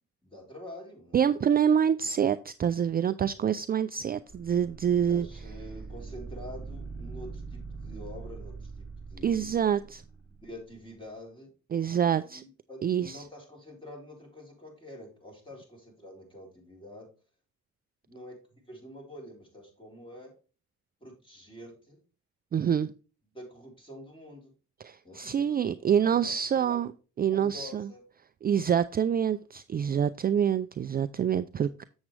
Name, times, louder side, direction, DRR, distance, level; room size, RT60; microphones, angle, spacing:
voice 1, 0.2-1.3 5.1-9.6 10.4-11.5 12.3-17.1 18.1-20.3 21.0-22.0 23.3-24.5 25.0-25.7 26.0-26.8 27.3-28.0, left 1 dB, 15° left, 4.1 m, -47 dB
voice 2, 1.1-5.3 9.2-10.0 11.7-12.4 12.8-13.2 22.5-22.9 24.8-26.9 27.2-27.9 28.4-31.8, right 8 dB, 30° right, 0.4 m, -26 dB
sound 1, 4.3-10.5, right 4 dB, ahead, 2.9 m, -42 dB
7.2 x 7.2 x 3.2 m
cardioid pair, 90°, 30 cm